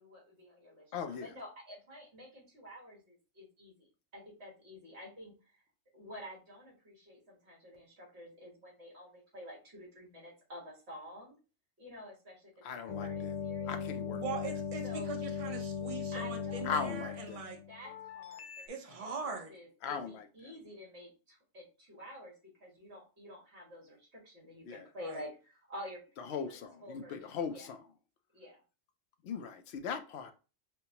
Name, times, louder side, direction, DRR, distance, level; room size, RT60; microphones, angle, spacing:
voice 1, 0.0-5.5 5.9-11.4 11.8-13.9 14.8-15.1 16.1-17.3 17.7-27.7 28.3-28.6, equal, 60° right, 2.0 m, -50 dB
voice 2, 0.9-1.2 12.6-13.3 13.7-14.2 16.7-17.4 19.8-20.2 24.7-24.8 26.3-27.8 29.2-30.3, left 6 dB, 65° left, 0.8 m, -38 dB
sound 1, 12.9-18.7, left 7 dB, 80° left, 0.3 m, -38 dB
voice 3, 14.1-17.6 18.7-19.5 25.0-25.2, right 5 dB, 35° right, 0.7 m, -41 dB
5.6 x 2.2 x 2.8 m
omnidirectional pair, 1.3 m